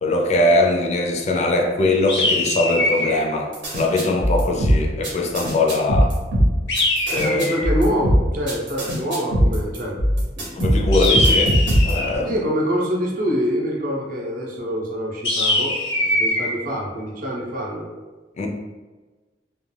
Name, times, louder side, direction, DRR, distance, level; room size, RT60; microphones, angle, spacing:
voice 1, 0.0-6.1 7.1-7.5 10.5-11.6 11.8-12.4 18.4-18.5, left 2 dB, 40° left, 1 dB, 0.4 m, -21 dB
sound 1, 2.1-3.2 6.7-7.7 10.9-12.2 15.2-16.5, left 1 dB, 80° left, 0.7 m, -22 dB
sound 2, 3.5-12.2, equal, 80° right, 0.8 m, -20 dB
voice 2, 7.1-10.0 10.4-10.9 12.2-17.9, equal, 50° right, -2 dB, 0.6 m, -26 dB
2.4 x 2.2 x 3.2 m, 1.3 s
head